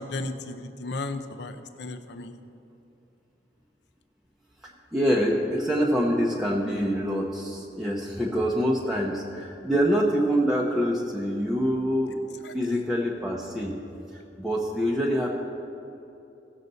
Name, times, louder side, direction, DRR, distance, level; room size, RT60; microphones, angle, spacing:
voice 1, 0.0-2.4 12.7-12.8, left 2 dB, 70° left, 9 dB, 0.6 m, -35 dB
voice 2, 4.6-12.2 12.5-13.8 14.1-15.3, equal, ahead, -4 dB, 0.7 m, -25 dB
17.0 x 6.5 x 4.1 m, 2.9 s
head